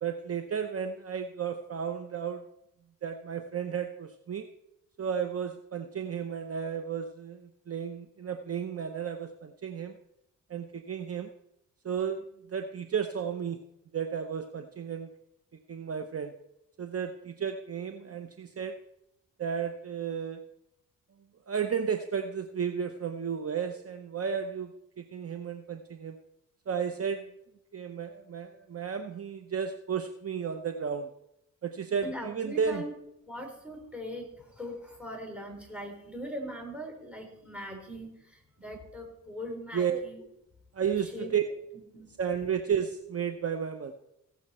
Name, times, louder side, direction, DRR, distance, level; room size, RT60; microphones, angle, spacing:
voice 1, 0.0-2.5 3.0-4.5 5.0-10.0 10.5-11.3 11.8-13.6 13.9-15.1 15.7-16.3 16.8-18.8 19.4-20.4 21.5-26.2 26.7-27.2 27.7-31.1 31.6-32.8 38.7-38.8 39.7-40.0 40.7-41.4 42.2-43.9, right 7 dB, 45° right, 7 dB, 0.8 m, -33 dB
voice 2, 32.0-32.9 33.3-40.2 41.1-41.3 41.9-42.2, equal, 5° right, 3 dB, 3.8 m, -40 dB
16.5 x 7.1 x 4.3 m, 0.81 s
cardioid pair, 85°, 34 cm